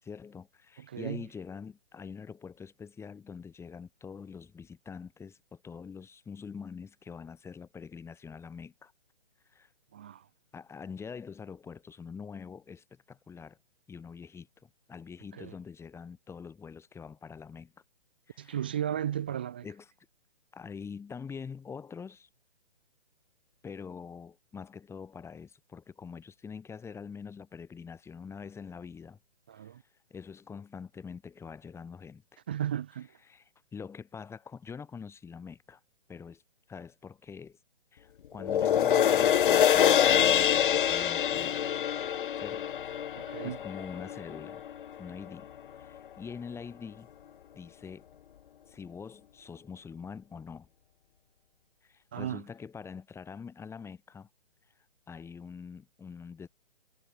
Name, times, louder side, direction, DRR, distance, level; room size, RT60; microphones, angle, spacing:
voice 1, 0.0-8.9 9.5-9.7 10.5-13.6 13.9-17.7 18.3-18.7 19.6-19.9 20.5-22.3 23.6-29.2 29.5-29.7 30.1-32.4 33.3-35.8 36.1-36.4 36.7-37.6 37.9-41.7 42.4-44.6 45.0-45.5 45.8-47.1 47.5-48.1 48.7-50.7 51.8-54.3 55.1-56.5, left 6 dB, 10° left, 5.7 m, -45 dB
voice 2, 0.8-1.2 9.9-10.3 15.3-15.5 18.4-19.6 29.5-29.8 32.5-33.1 43.2-43.6 52.1-52.4, right 10 dB, 10° right, 0.4 m, -35 dB
sound 1, 38.4-45.0 45.4-45.5, left 9 dB, 55° left, 0.4 m, -25 dB
figure-of-eight pair, 140°, 31 cm